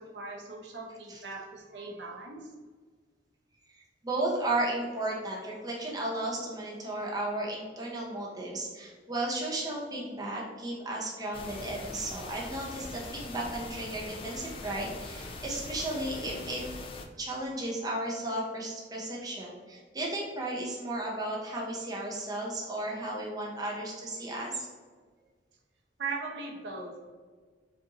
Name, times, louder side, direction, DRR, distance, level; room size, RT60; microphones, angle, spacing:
voice 1, 0.0-2.5 26.0-26.9, right 4 dB, 75° right, -1 dB, 0.7 m, -39 dB
voice 2, 4.0-16.6 17.2-24.7, right 1 dB, 20° right, -3 dB, 0.7 m, -34 dB
sound 1, 11.3-17.1, left 3 dB, 30° left, 0.3 m, -42 dB
5.0 x 2.6 x 2.9 m, 1.5 s
head